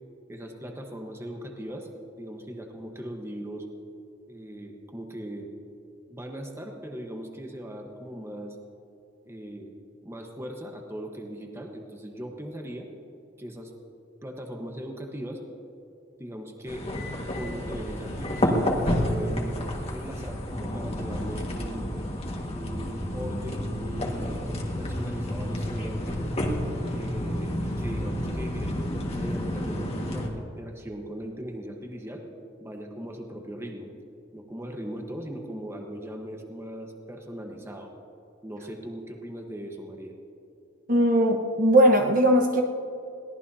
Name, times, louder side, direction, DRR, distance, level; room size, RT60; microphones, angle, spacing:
voice 1, 0.3-1.9 2.2-3.7 4.3-5.5 6.1-8.6 9.3-9.7 10.0-12.9 13.4-13.7 14.2-15.4 16.2-16.9 17.3-19.6 19.9-21.9 22.5-26.2 26.9-32.2 32.6-33.9 34.3-37.9 38.4-40.1, equal, 15° right, 2 dB, 1.2 m, -39 dB
sound 1, 16.7-30.3, left 1 dB, 35° left, 1.7 m, -30 dB
voice 2, 40.9-42.6, right 1 dB, 45° right, 3 dB, 1.2 m, -19 dB
22.5 x 17.5 x 2.8 m, 2.8 s
head